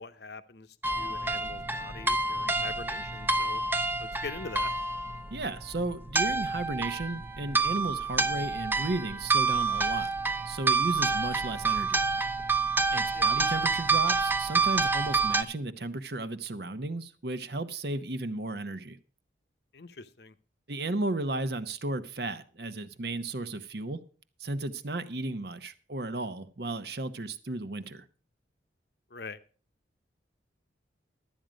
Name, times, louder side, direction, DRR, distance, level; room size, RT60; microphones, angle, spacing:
voice 1, 0.0-3.6 4.0-4.7 13.1-13.3 19.7-20.3 29.1-29.4, left 4 dB, 60° left, 0.8 m, -43 dB
sound 1, 0.8-15.4, right 3 dB, 10° right, 0.6 m, -28 dB
voice 2, 5.3-10.1 10.5-12.0 12.9-19.0 20.7-24.0 24.4-28.0, right 2 dB, 60° right, 0.9 m, -34 dB
12.5 x 9.0 x 5.1 m
head